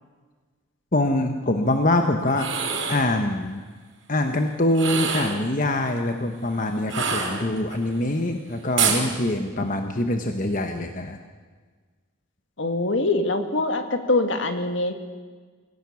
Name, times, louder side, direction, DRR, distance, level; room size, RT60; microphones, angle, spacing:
voice 1, 0.9-2.5 2.9-3.6 4.1-11.2, left 1 dB, 40° left, 5 dB, 1.1 m, -24 dB
sound 1, 2.3-3.1 4.7-5.4 6.9-7.8 8.8-9.1, right 6 dB, 70° right, 4.7 m, -25 dB
voice 2, 12.6-14.9, left 2 dB, 65° left, 7 dB, 1.8 m, -23 dB
23.5 x 17.0 x 7.1 m, 1.5 s
head